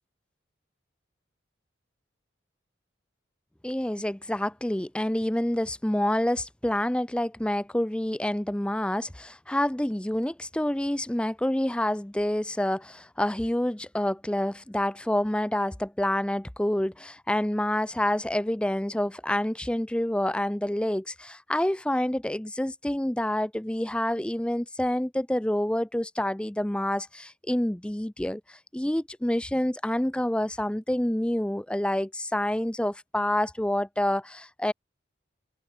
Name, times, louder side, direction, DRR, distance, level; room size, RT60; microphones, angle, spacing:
voice 1, 3.6-34.7, left 1 dB, 5° left, 0.4 m, -28 dB
head